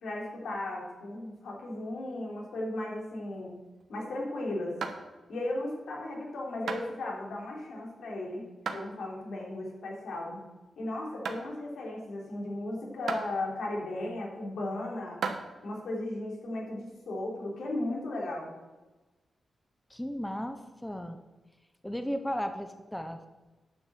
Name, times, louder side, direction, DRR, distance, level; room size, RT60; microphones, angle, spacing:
voice 1, 0.0-3.6 3.9-4.7 5.3-10.5 10.8-15.2 15.6-18.5, left 1 dB, 90° left, -2 dB, 3.2 m, -36 dB
sound 1, 2.6-4.2 4.8-5.4 5.9-6.2 6.7-6.9 7.6-8.0 8.6-8.9 9.3-9.4 10.1-10.2 10.7-10.9 11.2-11.5 12.2-12.3 13.1-13.3 14.1-14.2 15.0-15.4, right 5 dB, 75° right, 1.1 m, -36 dB
voice 2, 19.9-21.2 21.8-23.3, equal, 5° left, 7 dB, 0.6 m, -35 dB
9.9 x 6.0 x 7.7 m, 1.2 s
wide cardioid pair, 170°, 0 cm